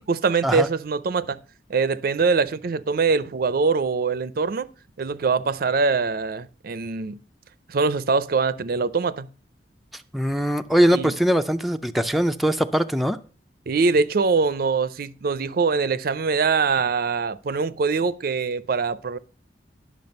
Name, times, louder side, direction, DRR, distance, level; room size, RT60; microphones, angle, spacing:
voice 1, 0.0-1.4 1.7-4.7 5.0-7.2 7.7-9.3 10.9-11.1 13.7-19.2, right 4 dB, 55° right, 0.5 m, -23 dB
voice 2, 9.9-13.2, equal, ahead, 0.4 m, -21 dB
10.5 x 6.3 x 5.3 m
head